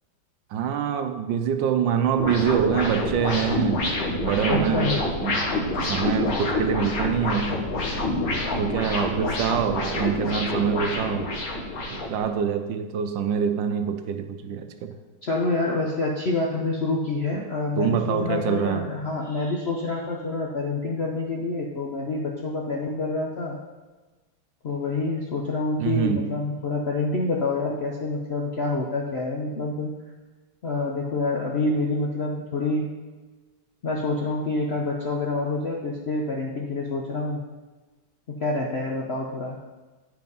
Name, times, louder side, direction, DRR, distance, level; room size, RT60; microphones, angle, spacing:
voice 1, 0.5-3.9 4.2-5.5 5.8-7.6 8.6-11.3 11.9-14.9 17.8-18.9 25.8-26.3, right 8 dB, 70° right, 8 dB, 1.3 m, -25 dB
sound 1, 2.2-12.2, left 2 dB, 50° left, 1.5 m, -27 dB
voice 2, 4.5-5.0 15.2-23.6 24.6-29.9 30.6-32.8 33.8-37.4 38.4-39.6, left 3 dB, 65° left, -1 dB, 0.6 m, -27 dB
9.5 x 4.7 x 5.4 m, 1.3 s
omnidirectional pair, 2.2 m